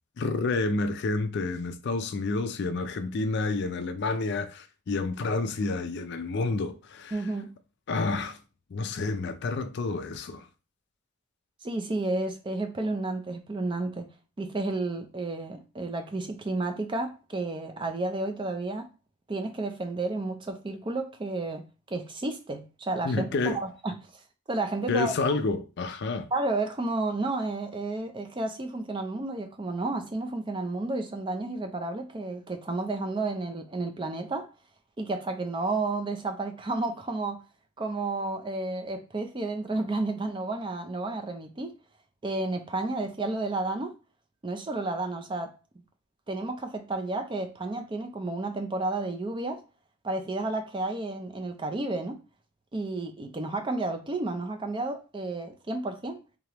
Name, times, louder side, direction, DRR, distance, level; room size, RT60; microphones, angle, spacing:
voice 1, 0.2-7.3 7.9-8.4 8.7-10.5 23.0-23.6 24.9-26.3, left 3 dB, 50° left, 0.4 m, -29 dB
voice 2, 7.1-7.5 11.6-14.1 14.4-18.9 19.3-23.9 24.5-25.3 26.3-34.5 35.0-37.4 37.8-41.7 42.2-43.9 44.4-45.5 46.3-49.6 50.0-52.2 52.7-56.2, right 2 dB, 20° right, 0.4 m, -31 dB
3.6 x 3.3 x 2.9 m
head